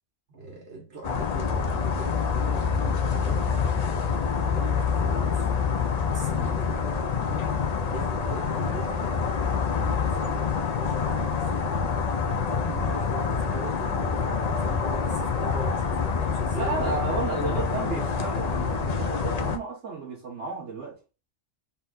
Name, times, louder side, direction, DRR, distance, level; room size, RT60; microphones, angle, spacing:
voice 1, 0.3-3.6 4.3-5.6 6.1-7.6 7.9-11.8 12.4-17.1, right 3 dB, 65° right, 1.7 m, -41 dB
sound 1, 1.0-19.6, left 6 dB, 45° left, 0.6 m, -26 dB
voice 2, 16.5-21.0, right 4 dB, 80° right, 1.6 m, -32 dB
4.0 x 2.6 x 3.9 m
omnidirectional pair, 1.2 m